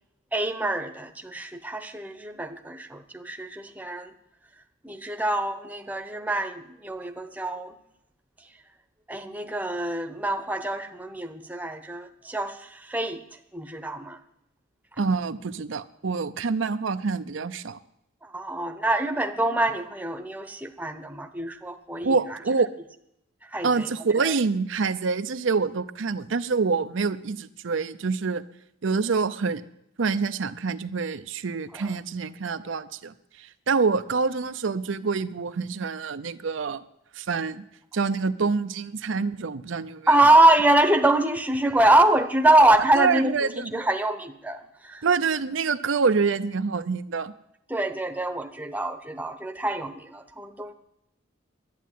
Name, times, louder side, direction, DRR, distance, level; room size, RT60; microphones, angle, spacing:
voice 1, 0.3-4.1 4.8-7.8 9.1-13.2 13.5-14.2 18.2-22.1 23.5-23.9 24.2-24.3 31.7-31.9 40.1-45.1 47.7-50.7, right 1 dB, 10° right, 7 dB, 0.9 m, -24 dB
voice 2, 15.0-17.8 22.0-22.7 23.6-28.4 28.8-29.6 30.0-36.8 37.2-37.6 37.9-40.1 42.9-43.8 45.0-47.3, right 4 dB, 75° right, 10 dB, 0.6 m, -26 dB
11.5 x 9.3 x 9.2 m, 0.79 s
head